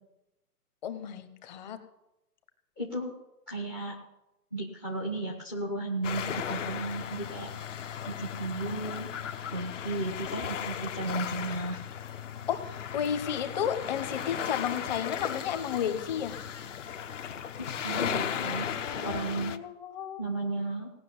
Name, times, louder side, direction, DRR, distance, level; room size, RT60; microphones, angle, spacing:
voice 1, 0.8-1.8 12.5-16.4 18.3-20.2, left 9 dB, 25° left, 9 dB, 1.2 m, -33 dB
voice 2, 2.8-3.1 3.5-4.0 4.5-7.5 8.0-9.1 9.5-11.8 17.6-18.7 19.0-19.5 20.2-20.9, right 2 dB, 10° left, 2 dB, 0.6 m, -34 dB
sound 1, 6.0-19.6, left 8 dB, 50° left, 1.2 m, -36 dB
17.5 x 6.3 x 9.6 m, 0.91 s
hypercardioid pair, 145°, 49 cm